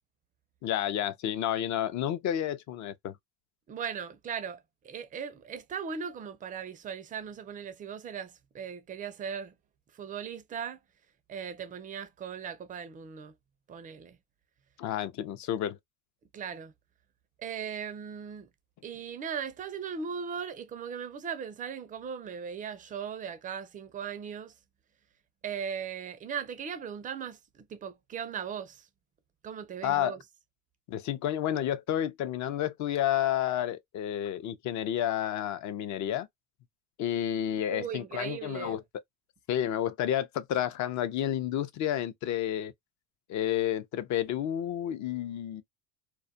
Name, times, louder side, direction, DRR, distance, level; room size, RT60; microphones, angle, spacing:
voice 1, 0.6-3.2 14.8-15.8 29.8-30.2 30.9-36.3 37.0-38.8 39.5-42.7 43.3-45.6, left 11 dB, 50° left, 0.5 m, -30 dB
voice 2, 3.7-9.6 9.9-10.8 11.3-13.3 13.7-14.2 16.3-16.7 17.4-18.5 18.8-24.5 25.4-28.9 29.4-30.2 37.7-38.8, right 7 dB, 20° right, 0.4 m, -38 dB
2.3 x 2.1 x 2.6 m
supercardioid pair, 110°, 39 cm